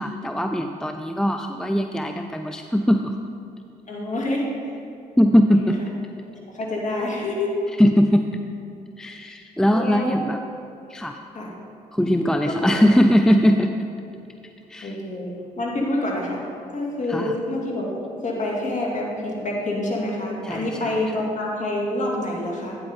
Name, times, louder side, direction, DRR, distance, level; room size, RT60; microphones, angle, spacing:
voice 1, 0.0-3.2 5.2-5.8 7.8-8.4 9.0-10.4 10.9-11.2 11.9-13.8 14.7-15.0 17.1-17.4 20.4-21.1, equal, 5° left, 5 dB, 0.5 m, -20 dB
voice 2, 3.9-4.5 5.6-5.7 6.5-7.5 9.7-10.2 11.3-11.5 12.5-12.8 14.8-16.4 16.7-22.8, left 1 dB, 40° left, -2 dB, 2.3 m, -27 dB
9.1 x 8.0 x 3.6 m, 2.6 s
hypercardioid pair, 50°, 18 cm